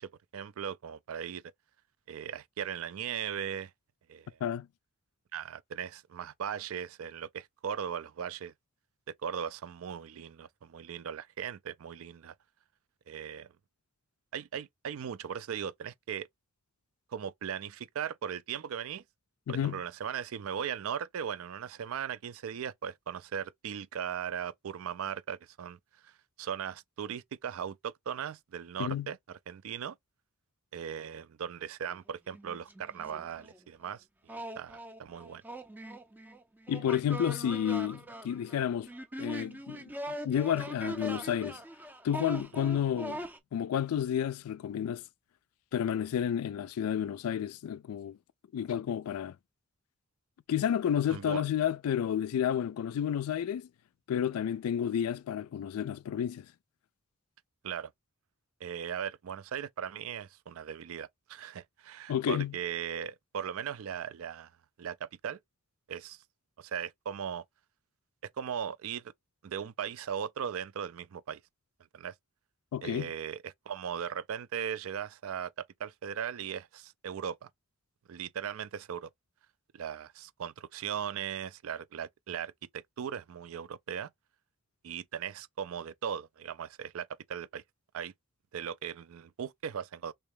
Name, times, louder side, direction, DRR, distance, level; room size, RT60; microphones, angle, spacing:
voice 1, 0.0-1.4 2.1-3.7 4.1-4.3 5.3-8.5 9.2-12.3 13.1-13.5 14.3-16.3 17.1-19.0 19.5-25.8 26.0-26.1 26.4-30.0 30.7-35.4 51.1-51.4 57.6-57.9 58.6-64.5 64.8-65.4 65.9-66.2 66.6-67.4 68.4-69.0 69.4-71.4 71.9-72.1 72.8-77.5 78.1-79.1 79.7-84.1 84.8-87.6 87.9-88.1 88.5-90.1, right 8 dB, 70° right, 0.4 m, -38 dB
voice 2, 19.5-19.8 28.8-29.1 36.7-38.9 39.2-41.6 42.0-43.2 43.5-45.0 45.7-48.2 48.5-49.4 50.5-53.7 54.1-56.5 62.1-62.5 72.7-73.1, left 9 dB, 80° left, 0.3 m, -31 dB
sound 1, 31.9-32.0 32.3-33.6 34.3-43.4, right 1 dB, 10° right, 0.4 m, -41 dB
3.2 x 2.8 x 3.2 m
head